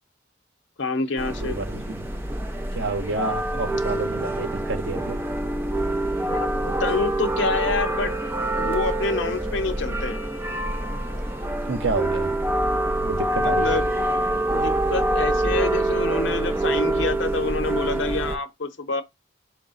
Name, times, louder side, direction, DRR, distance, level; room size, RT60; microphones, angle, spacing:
voice 1, 0.8-1.6 6.3-8.2 8.6-10.2 13.4-13.9 14.5-19.0, left 3 dB, 75° left, 0.7 m, -27 dB
sound 1, 1.2-18.4, right 1 dB, 10° right, 0.6 m, -25 dB
voice 2, 1.4-2.1 2.7-5.3 11.7-12.4 13.0-13.8, right 3 dB, 70° right, 0.7 m, -29 dB
4.8 x 2.1 x 3.9 m
head